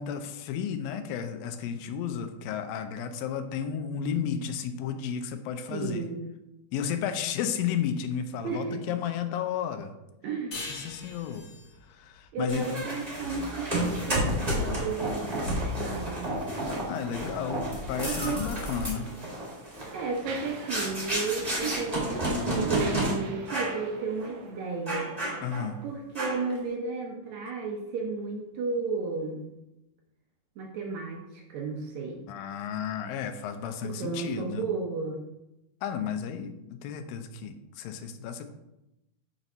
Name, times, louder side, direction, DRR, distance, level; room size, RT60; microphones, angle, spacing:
voice 1, 0.0-6.0 6.7-9.9 10.7-11.5 11.9-12.8 16.9-19.1 25.4-25.8 32.3-34.7 35.8-38.5, left 8 dB, 90° left, 8 dB, 2.4 m, -33 dB
voice 2, 5.7-6.2 8.4-8.8 10.2-10.6 12.3-15.5 15.8-16.3 18.0-18.5 19.6-25.2 25.8-29.5 30.6-32.2 33.8-35.3, right 4 dB, 70° right, 1 dB, 1.8 m, -33 dB
sound 1, 10.5-13.7, left 3 dB, 60° left, 1.1 m, -43 dB
sound 2, 12.5-23.1 23.5-23.8 24.2-24.3 24.9-25.7 26.1-26.6, right 1 dB, 15° right, 1.5 m, -31 dB
Mechanisms, 18.7-18.8 19.5-25.2, right 4 dB, 90° right, 2.5 m, -45 dB
7.5 x 4.0 x 5.4 m, 0.91 s
omnidirectional pair, 4.0 m